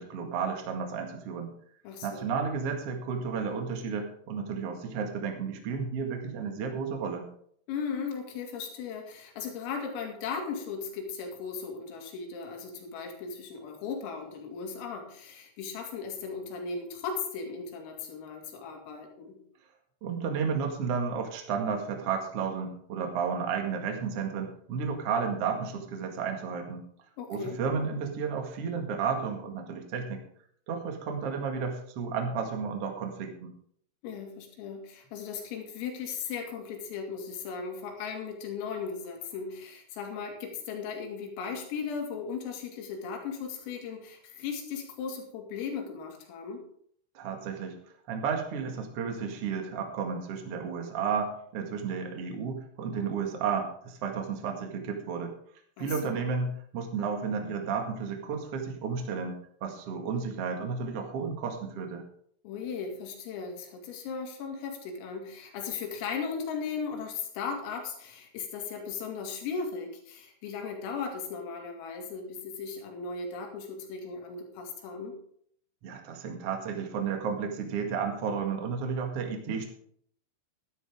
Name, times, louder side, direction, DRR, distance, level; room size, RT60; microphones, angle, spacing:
voice 1, 0.0-1.5 2.0-7.3 20.0-26.8 27.3-30.2 30.7-33.5 47.1-47.7 48.1-55.3 55.8-62.0 75.8-79.7, right 6 dB, 55° right, 3 dB, 1.7 m, -32 dB
voice 2, 1.8-2.3 7.7-19.4 27.2-27.6 34.0-46.6 55.8-56.2 62.4-75.2, left 5 dB, 90° left, 2 dB, 4.8 m, -37 dB
14.0 x 12.0 x 3.7 m, 0.64 s
omnidirectional pair, 5.8 m